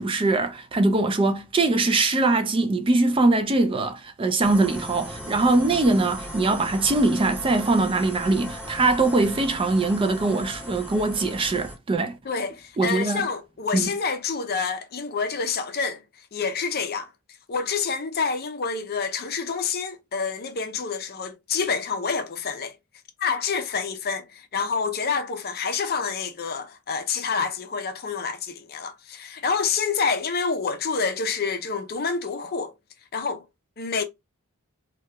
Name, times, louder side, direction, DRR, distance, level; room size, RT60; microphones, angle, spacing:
voice 1, 0.0-12.2 12.8-13.2 13.7-13.9, right 2 dB, 25° right, 0.4 m, -22 dB
sound 1, 4.4-11.8, equal, 5° right, 1.1 m, -37 dB
voice 2, 12.2-16.0 16.3-17.1 17.5-22.8 23.2-32.7 33.1-33.4 33.8-34.0, left 5 dB, 45° left, 0.6 m, -28 dB
3.0 x 2.3 x 3.3 m
head